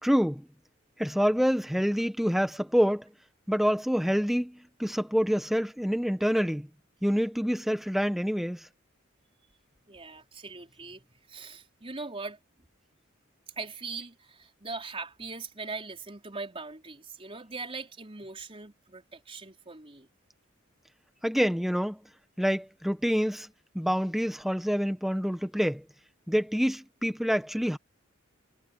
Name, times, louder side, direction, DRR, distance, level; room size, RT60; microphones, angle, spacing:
voice 1, 0.0-0.4 1.0-3.1 3.5-6.7 7.0-8.7 21.2-22.0 22.4-23.5 23.7-25.8 26.3-27.8, equal, ahead, 1.1 m, -27 dB
voice 2, 9.9-12.4 13.6-20.1, right 4 dB, 25° right, 4.6 m, -41 dB
head